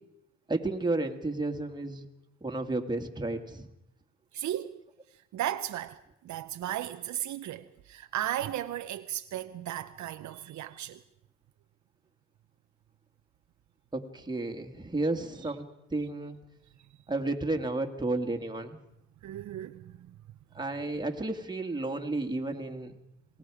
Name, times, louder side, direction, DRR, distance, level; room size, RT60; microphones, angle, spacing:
voice 1, 0.5-2.1 2.4-3.7 13.9-16.4 17.1-18.8 20.5-22.9, right 2 dB, 15° right, 2.1 m, -32 dB
voice 2, 4.3-4.8 5.1-11.0 16.8-16.9 19.2-20.2, right 12 dB, 70° right, 0.7 m, -36 dB
27.5 x 19.5 x 4.9 m
cardioid pair, 90°, 30 cm